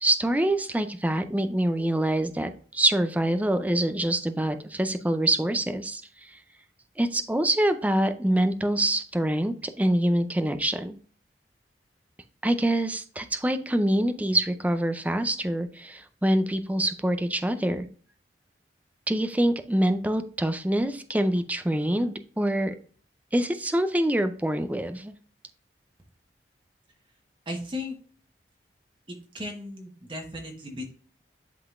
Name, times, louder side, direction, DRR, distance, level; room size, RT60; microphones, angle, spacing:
voice 1, 0.0-6.4 7.0-11.0 12.4-17.9 19.1-22.8 23.3-25.1, right 1 dB, 10° right, 9 dB, 0.4 m, -25 dB
voice 2, 27.5-28.0 29.1-30.9, left 1 dB, 30° right, 2 dB, 1.1 m, -36 dB
11.0 x 3.8 x 2.4 m, 0.43 s
head